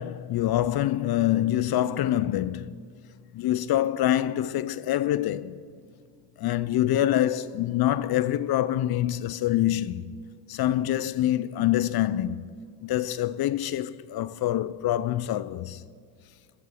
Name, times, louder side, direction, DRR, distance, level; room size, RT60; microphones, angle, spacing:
voice 1, 0.0-2.8 3.3-5.6 6.4-10.2 10.5-12.5 12.8-15.8, left 13 dB, 55° left, 0.5 m, -25 dB
13.0 x 7.4 x 4.9 m
supercardioid pair, 65°, 48 cm